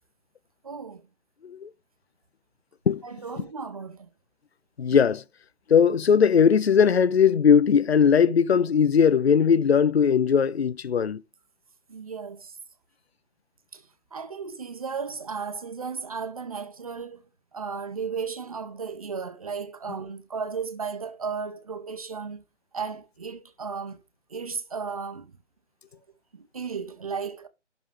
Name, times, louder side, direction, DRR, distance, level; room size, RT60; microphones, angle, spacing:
voice 1, 0.6-1.0 3.0-4.1 11.9-12.6 13.7-17.2 17.5-22.4 22.7-24.0 24.3-25.3 26.3-27.5, right 5 dB, 30° right, 0.9 m, -35 dB
voice 2, 4.8-5.2 5.7-11.2, left 7 dB, 60° left, 0.5 m, -19 dB
11.5 x 4.0 x 3.4 m
figure-of-eight pair, 150°, 36 cm